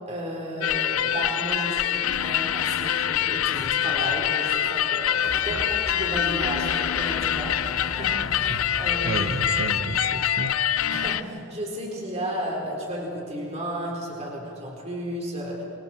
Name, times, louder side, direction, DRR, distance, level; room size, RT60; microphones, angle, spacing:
voice 1, 0.1-5.6 5.9-9.3 10.9-15.6, equal, 30° right, -2 dB, 4.4 m, -33 dB
sound 1, 0.6-11.2, left 10 dB, 80° left, 0.5 m, -25 dB
sound 2, 5.2-9.6, equal, ahead, 3.6 m, -39 dB
voice 2, 9.0-10.9, right 2 dB, 70° right, 9 dB, 1.1 m, -32 dB
28.0 x 25.5 x 4.6 m, 2.7 s
head